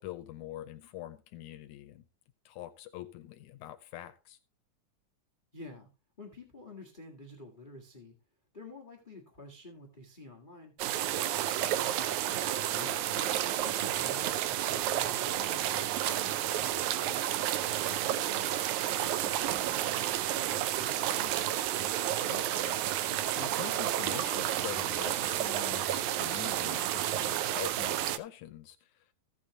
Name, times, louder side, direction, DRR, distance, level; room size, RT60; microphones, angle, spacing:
voice 1, 0.0-2.1 2.5-4.4 12.7-13.1 22.3-29.1, left 13 dB, 90° left, 2.2 m, -45 dB
voice 2, 5.5-5.9 6.2-8.1 8.5-12.6 13.1-13.3 13.6-17.6 17.9-18.7 19.0-21.8, left 2 dB, 20° left, 1.4 m, -50 dB
sound 1, 10.8-28.2, right 12 dB, 85° right, 2.1 m, -31 dB
15.0 x 7.2 x 3.0 m
omnidirectional pair, 3.4 m